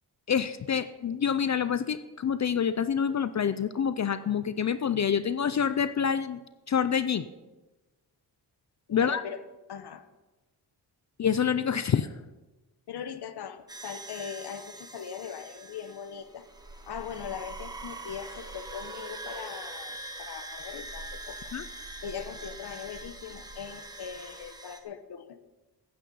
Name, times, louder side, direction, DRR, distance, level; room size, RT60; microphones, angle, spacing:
voice 1, 0.3-6.4 6.7-7.3 8.9-9.2 11.2-12.1 21.5-21.6, left 7 dB, 45° left, 13 dB, 0.4 m, -27 dB
voice 2, 8.9-9.4 9.7-10.1 12.9-16.5 16.8-21.5 22.0-25.4, left 8 dB, 70° left, 11 dB, 1.0 m, -40 dB
sound 1, 13.7-24.8, right 2 dB, 10° right, 1.0 m, -43 dB
15.0 x 9.2 x 5.5 m, 1.1 s
wide cardioid pair, 180°, 42 cm